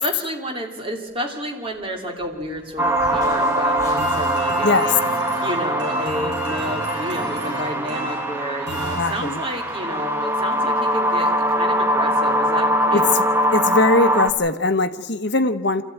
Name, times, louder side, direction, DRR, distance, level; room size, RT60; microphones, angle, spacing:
voice 1, 0.0-5.0 5.4-13.1, equal, 25° right, 2 dB, 2.8 m, -30 dB
Race car auto racing / Accelerating revving vroom, 1.8-1.9 2.1-6.1, left 1 dB, 15° left, 6.5 m, -40 dB
sound 1, 2.8-14.3, right 1 dB, 10° right, 1.2 m, -22 dB
sound 2, 4.0-9.7, equal, 55° right, 4.9 m, -32 dB
voice 2, 4.6-4.9 9.0-9.4 12.9-13.0 13.5-15.8, left 2 dB, 55° left, 8 dB, 1.0 m, -20 dB
25.0 x 14.5 x 9.2 m, 1.3 s
head